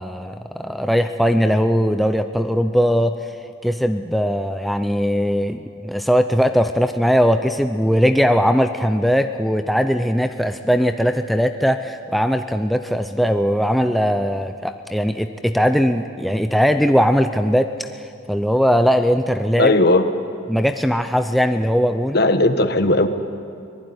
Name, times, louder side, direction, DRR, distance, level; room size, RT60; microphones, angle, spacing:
voice 1, 0.0-3.2 3.6-17.9 18.3-19.7 20.5-22.2, equal, ahead, 7 dB, 0.5 m, -19 dB
voice 2, 19.6-20.0 22.1-23.1, left 2 dB, 55° left, 9 dB, 1.3 m, -16 dB
24.0 x 20.0 x 9.7 m, 2.4 s
head